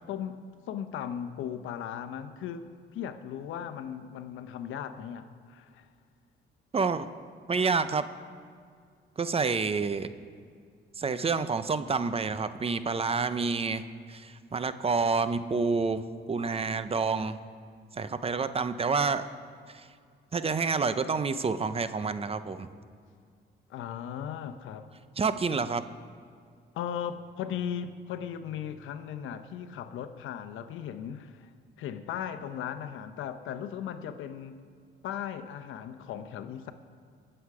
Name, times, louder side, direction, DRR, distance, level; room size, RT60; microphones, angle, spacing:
voice 1, 0.1-0.4 0.7-2.7 2.9-5.9 23.7-24.9 26.7-31.5 31.8-34.6 35.0-36.7, left 9 dB, 85° left, 10 dB, 0.8 m, -37 dB
voice 2, 6.7-7.1 7.5-8.1 9.2-10.1 11.0-16.0 16.3-17.4 17.9-19.2 19.7-19.9 20.3-22.7 25.2-25.8, right 4 dB, 30° right, 12 dB, 0.7 m, -28 dB
21.5 x 7.9 x 4.9 m, 2.1 s
cardioid pair, 90°, 20 cm